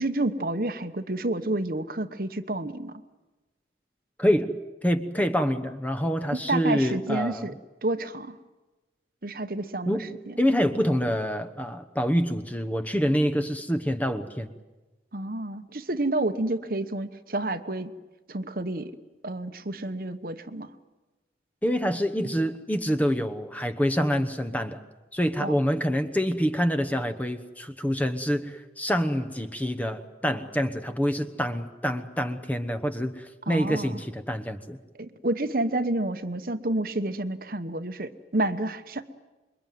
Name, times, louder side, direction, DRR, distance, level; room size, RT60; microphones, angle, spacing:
voice 1, 0.0-3.0 6.3-7.5 7.8-8.4 9.2-10.3 15.1-17.9 18.3-18.9 19.2-20.7 25.4-25.5 33.5-34.0 35.0-39.1, right 2 dB, 50° right, 10 dB, 1.1 m, -29 dB
voice 2, 4.2-4.5 4.8-7.5 9.9-10.1 10.4-14.5 21.6-24.8 25.1-34.8, equal, 10° left, 10 dB, 1.1 m, -26 dB
27.5 x 23.0 x 9.3 m, 1.1 s
head